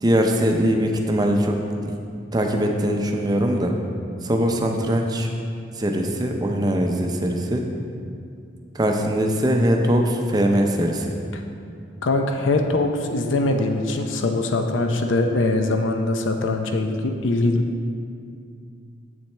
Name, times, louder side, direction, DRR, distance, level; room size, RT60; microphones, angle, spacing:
voice 1, 0.0-1.9 2.3-3.7 4.2-5.3 5.8-7.7 8.8-11.1, equal, 20° right, 2 dB, 0.5 m, -21 dB
voice 2, 12.0-17.6, left 2 dB, 80° left, 5 dB, 0.6 m, -22 dB
8.2 x 7.2 x 3.3 m, 2.4 s
head